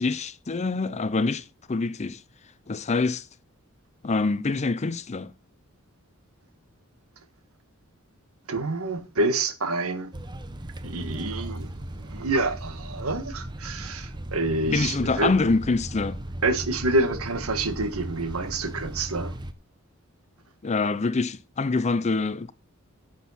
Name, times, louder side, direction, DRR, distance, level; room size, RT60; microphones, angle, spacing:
voice 1, 0.0-2.2 2.7-3.3 4.0-5.3 14.7-16.2 20.6-22.5, left 3 dB, 30° left, 0.5 m, -25 dB
voice 2, 8.5-10.1 10.8-11.7 12.0-15.3 16.4-19.3, right 2 dB, 80° right, 1.5 m, -27 dB
sound 1, 10.1-19.5, right 1 dB, 20° right, 0.8 m, -37 dB
10.5 x 7.4 x 4.2 m
head